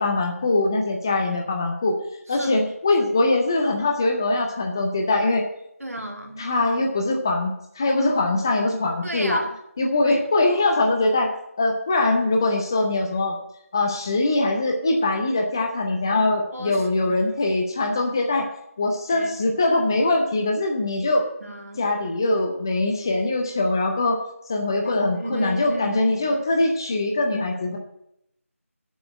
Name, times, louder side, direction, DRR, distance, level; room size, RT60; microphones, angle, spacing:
voice 1, 0.0-1.9 2.3-5.4 6.4-9.4 9.8-11.3 11.6-13.3 13.7-18.5 18.8-21.2 21.8-24.2 24.5-27.8, left 2 dB, 15° left, 2 dB, 0.6 m, -22 dB
voice 2, 2.3-2.7 5.8-6.5 9.0-9.5 10.0-10.2 16.5-17.2 19.1-19.6 21.4-21.9 24.8-26.0 26.3-26.7, right 1 dB, 80° right, 3 dB, 1.9 m, -33 dB
7.0 x 6.9 x 7.9 m, 0.78 s
figure-of-eight pair, 165°, 8 cm